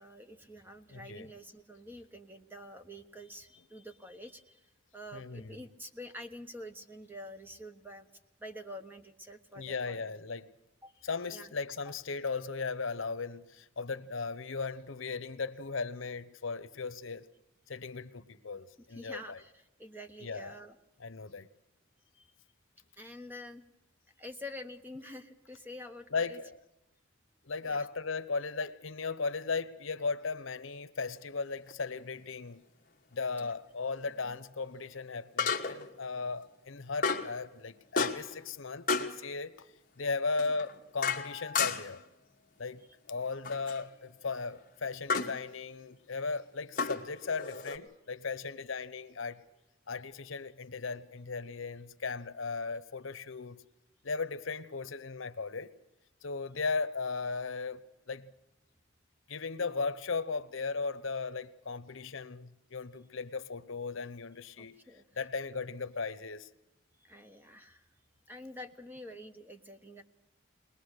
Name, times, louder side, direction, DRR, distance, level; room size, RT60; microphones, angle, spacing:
voice 1, 0.0-4.7 4.9-8.1 8.4-10.1 10.8-11.5 11.9-12.0 18.9-20.8 22.1-22.3 23.0-23.6 24.2-26.4 27.7-27.9 33.4-33.5 34.2-34.4 64.6-65.3 67.0-67.9 68.3-70.0, left 1 dB, 10° right, 1.0 m, -47 dB
voice 2, 0.9-1.3 5.1-5.6 9.5-10.5 11.0-17.3 17.7-19.4 20.2-20.5 21.0-21.5 26.1-26.6 27.4-32.6 33.1-39.7 40.0-42.0 42.6-42.8 43.1-49.4 49.9-53.6 54.0-55.7 56.2-57.8 58.1-58.3 59.3-64.8 65.2-66.5, left 4 dB, 80° left, 0.9 m, -37 dB
sound 1, 31.7-31.8 35.4-35.9 37.0-37.4 38.0-38.4 38.9-39.2 40.4-42.0 43.4-43.8 45.1-45.4 46.8-47.8, left 5 dB, 40° left, 1.3 m, -32 dB
21.5 x 20.5 x 6.6 m
head